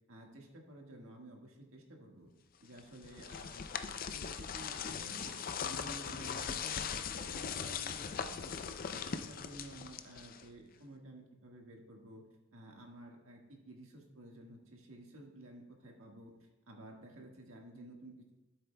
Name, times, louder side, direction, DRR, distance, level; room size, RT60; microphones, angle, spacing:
voice 1, 0.1-2.3 2.6-5.3 5.6-12.2 12.5-18.3, right 1 dB, 90° right, 1 dB, 1.6 m, -53 dB
sound 1, 2.8-10.6, left 7 dB, 45° left, 0.5 m, -40 dB
12.5 x 7.8 x 2.3 m, 1.0 s
head